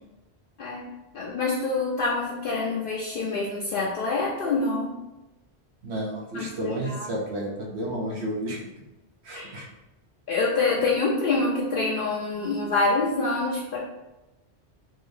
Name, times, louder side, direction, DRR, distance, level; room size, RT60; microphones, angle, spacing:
voice 1, 1.1-5.0 6.3-7.0 9.3-9.5 10.3-13.8, left 3 dB, 60° left, -3 dB, 0.7 m, -26 dB
voice 2, 5.8-8.6 9.2-9.7, right 1 dB, 75° right, -1 dB, 1.1 m, -31 dB
3.6 x 2.6 x 3.2 m, 1.0 s
omnidirectional pair, 1.1 m